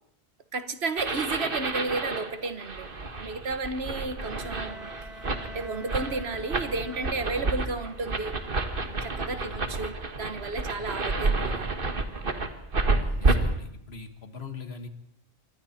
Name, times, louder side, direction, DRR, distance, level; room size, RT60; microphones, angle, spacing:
voice 1, 0.5-2.9 3.2-5.0 5.4-8.4 9.0-11.7, right 3 dB, 75° right, 1.7 m, -33 dB
sound 1, 1.0-13.3, right 3 dB, 55° right, 1.8 m, -30 dB
Bowed string instrument, 4.2-7.9, right 1 dB, ahead, 3.1 m, -46 dB
voice 2, 9.4-9.7 10.8-10.9 12.9-14.9, left 4 dB, 75° left, 1.9 m, -41 dB
26.5 x 24.0 x 4.4 m
omnidirectional pair, 1.1 m